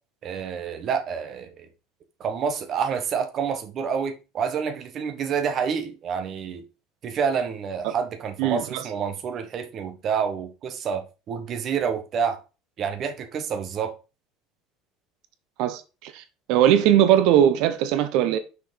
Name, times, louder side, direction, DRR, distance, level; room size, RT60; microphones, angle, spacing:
voice 1, 0.2-1.7 2.2-6.6 7.0-12.4 12.8-13.9, right 6 dB, 30° right, 1.1 m, -28 dB
voice 2, 8.4-8.8 15.6-16.2 16.5-18.4, right 11 dB, 55° right, 0.9 m, -20 dB
6.2 x 5.0 x 5.1 m
cardioid pair, 180°, 0 cm